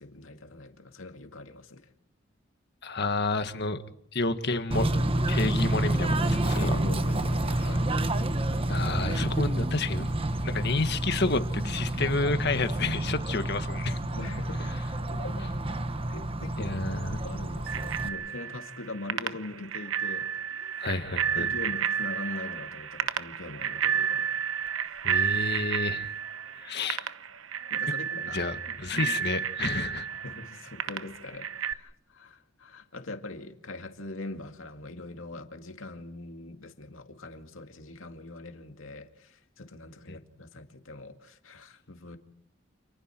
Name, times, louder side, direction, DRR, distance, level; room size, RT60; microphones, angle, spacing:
voice 1, 0.0-1.9 6.6-8.3 14.1-14.7 15.1-15.5 16.1-16.8 17.1-20.7 21.4-24.4 27.7-28.4 28.7-29.2 30.2-42.2, left 2 dB, 90° left, 2.3 m, -42 dB
voice 2, 2.8-3.8 4.1-4.9 5.3-6.8 8.7-10.1 10.4-14.0 16.6-17.1 20.8-21.5 25.0-26.1 26.6-27.0 28.3-30.1 40.1-40.2, left 3 dB, 55° left, 1.7 m, -30 dB
Bird / Train, 4.7-18.1, right 1 dB, 30° right, 1.2 m, -29 dB
Bicycle bell, 17.7-31.7, right 8 dB, 85° right, 1.0 m, -31 dB
29.5 x 28.5 x 4.6 m
head